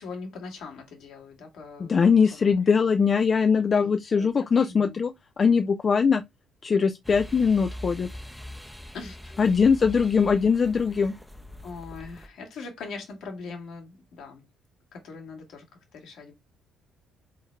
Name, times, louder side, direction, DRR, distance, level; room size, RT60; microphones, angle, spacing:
voice 1, 0.0-2.5 3.8-5.0 8.9-9.3 11.6-14.4 14.9-15.6 15.9-16.3, left 4 dB, 65° left, 1.7 m, -41 dB
voice 2, 1.8-6.2 6.6-8.1 9.4-11.1, left 6 dB, 40° left, 0.4 m, -21 dB
sound 1, 7.0-12.3, equal, ahead, 0.7 m, -42 dB
4.0 x 3.8 x 3.3 m
hypercardioid pair, 50°, 0 cm